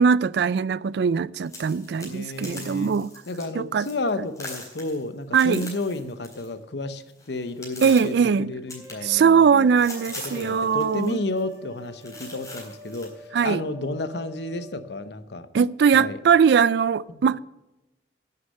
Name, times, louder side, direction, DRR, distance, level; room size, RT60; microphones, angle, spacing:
voice 1, 0.0-3.1 3.5-3.9 5.3-5.7 7.8-8.5 9.0-11.2 13.3-13.6 15.5-17.4, right 6 dB, 65° right, 0.3 m, -20 dB
sound 1, 1.4-3.4 3.8-4.1 4.3-6.5 6.8-8.2 8.7-9.5 9.8-11.1 11.4-11.6 12.0-13.1, left 2 dB, 20° left, 4.0 m, -41 dB
voice 2, 2.0-2.9 3.3-9.7 10.2-15.5 15.9-16.2 17.1-17.2, left 2 dB, 70° left, 0.9 m, -32 dB
sound 2, 8.7-14.8, right 2 dB, 25° right, 2.0 m, -46 dB
11.0 x 6.7 x 8.4 m
head